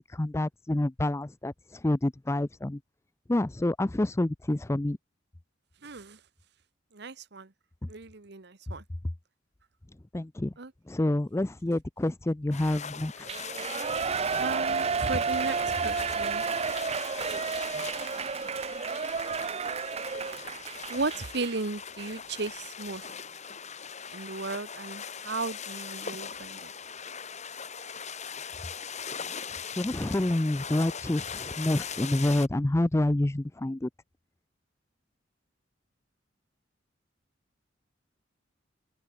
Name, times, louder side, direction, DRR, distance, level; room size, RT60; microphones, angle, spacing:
voice 1, 0.1-2.8 3.3-5.0 10.1-10.5 10.9-13.3 29.8-33.9, left 1 dB, 15° left, 0.5 m, -28 dB
voice 2, 5.8-6.2 6.9-7.5 7.9-8.8 10.6-10.7 14.4-16.4 20.9-23.1 24.1-26.7, right 3 dB, 60° right, 1.2 m, -35 dB
sound 1, 12.5-32.5, left 6 dB, 40° left, 3.2 m, -41 dB
Shout / Cheering, 13.3-21.6 22.0-22.1, right 5 dB, 35° right, 0.5 m, -31 dB
open air
head